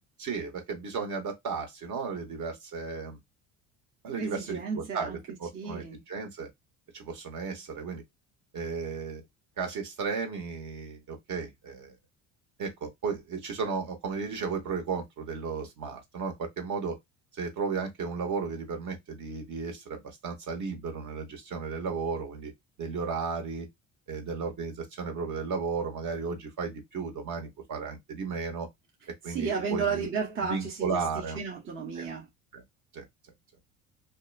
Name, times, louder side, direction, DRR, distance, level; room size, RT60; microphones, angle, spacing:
voice 1, 0.2-3.2 4.0-6.5 6.9-8.0 8.5-9.2 9.6-11.9 12.6-17.0 17.4-22.5 22.8-23.7 24.1-28.7 29.2-30.1 30.5-31.4 32.0-32.1 32.5-32.6 32.9-33.0, right 5 dB, 55° right, 1.1 m, -34 dB
voice 2, 4.2-5.2 5.5-6.0 29.2-32.3, right 5 dB, 35° right, 0.7 m, -33 dB
2.8 x 2.2 x 2.3 m
supercardioid pair, 80°, 37 cm